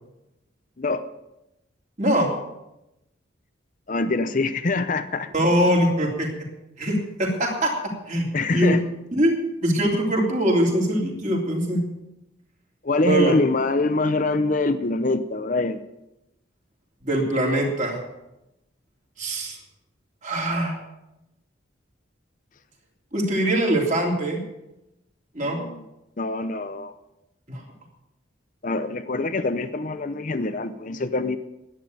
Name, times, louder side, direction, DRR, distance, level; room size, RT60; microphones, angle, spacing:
voice 1, 2.0-2.3 5.3-6.3 6.8-7.7 8.1-8.8 9.1-9.3 9.6-11.8 13.0-13.4 17.0-18.0 19.2-19.6 20.2-20.8 23.1-24.4 25.3-25.6 27.5-27.6, right 1 dB, 40° right, 0 dB, 3.2 m, -22 dB
voice 2, 3.9-5.3 8.3-8.8 12.8-15.8 25.4-25.8 26.2-26.9 28.6-31.4, left 3 dB, 40° left, 10 dB, 0.7 m, -24 dB
11.0 x 9.8 x 9.2 m, 0.91 s
head